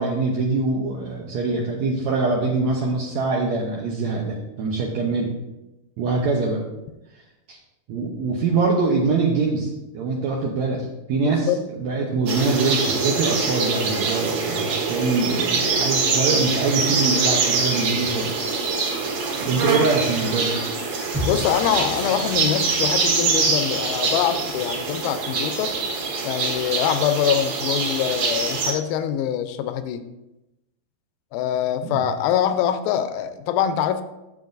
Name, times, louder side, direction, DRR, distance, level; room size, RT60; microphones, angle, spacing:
voice 1, 0.0-5.3 6.0-6.6 7.5-7.6 7.9-18.5 19.4-20.6 31.8-32.0, right 3 dB, 85° right, -2 dB, 1.5 m, -24 dB
voice 2, 11.2-11.6 21.3-25.7 26.2-30.1 31.3-34.0, left 9 dB, 80° left, 11 dB, 2.3 m, -24 dB
sound 1, 12.3-28.7, right 4 dB, 55° right, 2.2 m, -24 dB
sound 2, 21.1-25.1 25.4-25.5, equal, 30° right, 1.6 m, -35 dB
7.6 x 7.3 x 3.9 m, 0.97 s
omnidirectional pair, 4.5 m